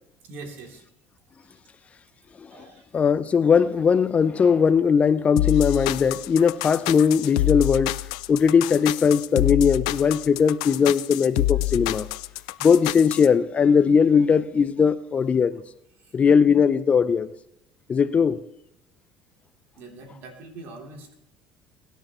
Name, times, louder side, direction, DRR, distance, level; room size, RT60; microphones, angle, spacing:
voice 1, 0.2-0.8 1.4-1.6 2.5-2.9 16.0-16.1 19.8-21.1, right 3 dB, 65° right, 3.2 m, -43 dB
voice 2, 2.9-7.9 8.3-12.1 12.6-15.6 16.1-17.3 17.9-18.4, left 6 dB, 35° left, 0.6 m, -19 dB
sound 1, 5.4-13.3, left 19 dB, 80° left, 0.4 m, -27 dB
22.5 x 10.5 x 3.1 m
hypercardioid pair, 65°, 4 cm